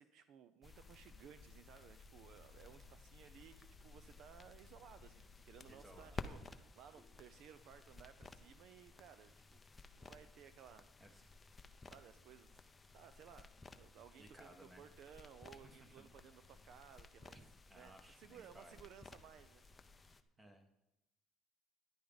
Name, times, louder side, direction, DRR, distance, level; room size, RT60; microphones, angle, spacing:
voice 1, 0.0-9.6 10.0-10.9 11.9-12.6 12.9-17.4 17.7-19.6 20.0-20.1, right 8 dB, 55° right, 12 dB, 0.5 m, -59 dB
sound 1, 0.6-20.2, left 3 dB, 15° left, 0.6 m, -56 dB
voice 2, 5.7-6.4 11.0-11.2 14.2-14.8 15.6-15.9 17.7-18.7 20.4-20.8, right 1 dB, 15° right, 5 dB, 1.4 m, -60 dB
13.0 x 10.0 x 4.0 m, 0.93 s
cardioid pair, 145°, 0 cm